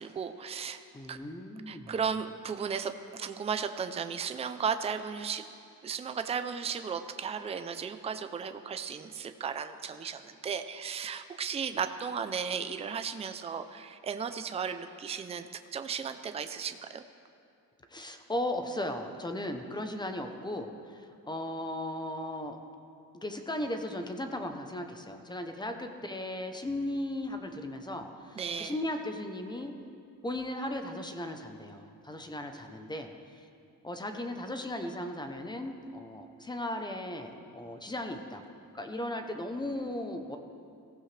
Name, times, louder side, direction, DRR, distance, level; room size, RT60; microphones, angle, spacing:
voice 1, 0.0-0.8 1.1-1.2 1.7-5.5 5.8-17.0 28.4-28.7, right 6 dB, 20° right, 9 dB, 0.4 m, -35 dB
voice 2, 0.9-1.9 17.9-22.6 23.1-29.7 30.2-33.5 33.8-38.4 38.7-40.4, left 1 dB, 15° left, 5 dB, 0.7 m, -36 dB
22.0 x 15.5 x 3.3 m, 2.5 s
cardioid pair, 175°, 33 cm